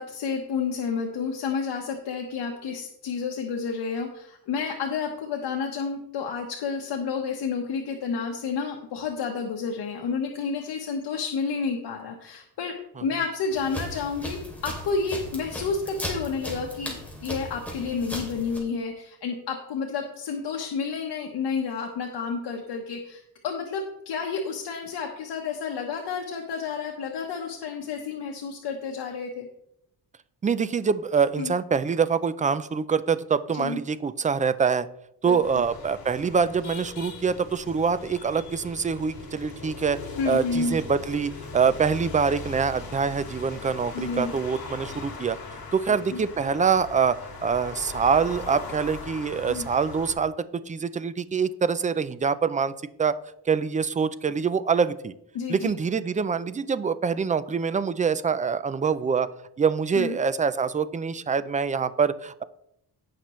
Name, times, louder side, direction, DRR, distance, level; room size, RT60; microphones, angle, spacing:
voice 1, 0.0-29.5 31.4-31.5 33.5-33.8 35.2-35.4 40.2-40.8 43.9-44.3 45.9-46.2 49.5-49.7 55.3-55.7 59.9-60.2, left 5 dB, 80° left, 1 dB, 1.2 m, -30 dB
sound 1, 13.5-18.6, equal, 5° left, 2.8 m, -37 dB
voice 2, 30.4-34.9 35.2-40.0 40.3-45.4 45.7-52.7 53.0-53.2 53.5-55.1 55.5-59.3 59.6-62.4, right 6 dB, 20° right, 15 dB, 0.3 m, -25 dB
sound 2, 35.4-50.1, left 4 dB, 60° left, 2.4 m, -40 dB
16.5 x 5.9 x 3.1 m, 0.78 s
cardioid pair, 140°, 41 cm